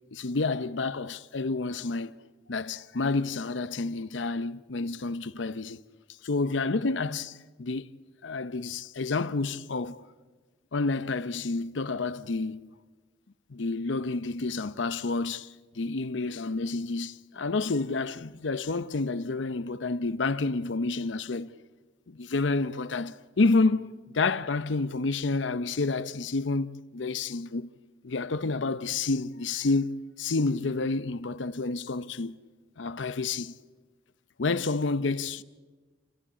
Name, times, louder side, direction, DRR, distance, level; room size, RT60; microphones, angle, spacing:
voice 1, 0.1-2.2 2.5-5.8 6.2-7.9 8.2-10.1 10.7-12.7 13.5-21.5 22.1-27.7 28.0-29.9 30.2-32.4 32.8-33.5 34.4-35.4, left 3 dB, 90° left, 0.7 m, -29 dB
28.5 x 15.0 x 8.4 m
head